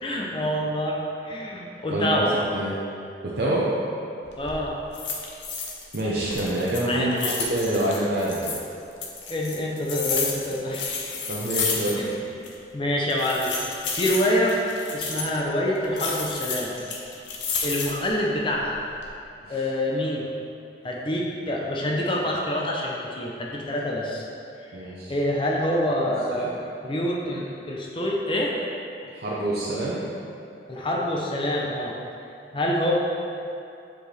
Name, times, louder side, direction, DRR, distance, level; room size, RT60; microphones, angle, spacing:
voice 1, 0.0-2.4 4.4-4.8 6.9-7.4 9.3-11.2 12.0-12.1 12.7-13.5 13.9-14.6 14.9-16.7 17.6-18.8 19.5-20.2 20.8-24.2 24.6-26.5 26.8-28.6 30.7-31.9 32.5-32.9, left 1 dB, 30° left, -2 dB, 0.6 m, -26 dB
voice 2, 1.9-2.2 2.5-2.7 3.2-3.6 5.9-7.2 7.5-8.5 11.3-12.2 19.4-19.6 24.7-25.1 26.3-26.5 29.1-30.0, right 1 dB, 60° right, -7 dB, 0.7 m, -26 dB
sound 1, 4.2-4.6 4.9-6.0 6.3-8.6 9.0-12.2 12.4-12.5 13.1-15.4 16.0-18.1 18.6-19.1, left 4 dB, 90° left, 0.8 m, -31 dB
7.6 x 4.6 x 3.3 m, 2.6 s
head